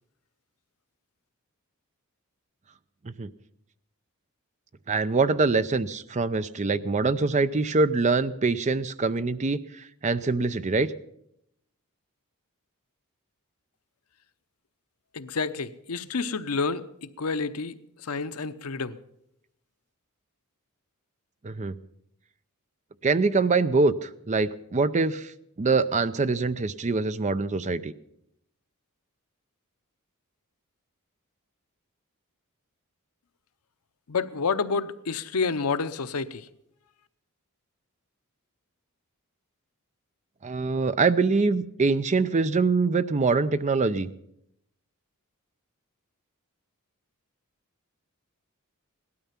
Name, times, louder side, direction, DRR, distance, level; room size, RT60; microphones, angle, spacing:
voice 1, 4.9-9.6 10.0-10.9 21.4-21.7 23.0-25.3 25.6-27.9 40.4-44.1, right 4 dB, 30° right, 13 dB, 0.5 m, -24 dB
voice 2, 15.1-17.7 18.0-19.0 34.1-36.5, left 4 dB, 85° left, 11 dB, 0.8 m, -29 dB
17.5 x 12.5 x 5.8 m, 0.78 s
head